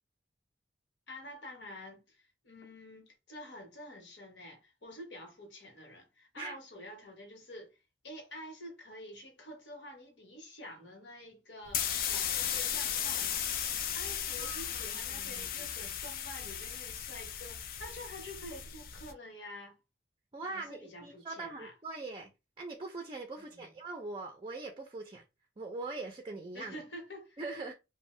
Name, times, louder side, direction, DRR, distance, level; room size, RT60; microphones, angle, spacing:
voice 1, 1.1-7.7 8.0-19.8 20.5-21.7 23.4-23.7 26.5-27.4, left 1 dB, 75° left, 1.0 m, -48 dB
sound 1, 11.7-19.1, left 9 dB, 50° left, 0.4 m, -36 dB
voice 2, 14.4-15.7 20.3-22.3 22.6-25.2 25.6-26.8 27.4-27.7, right 3 dB, 25° right, 0.4 m, -42 dB
2.6 x 2.1 x 3.1 m
head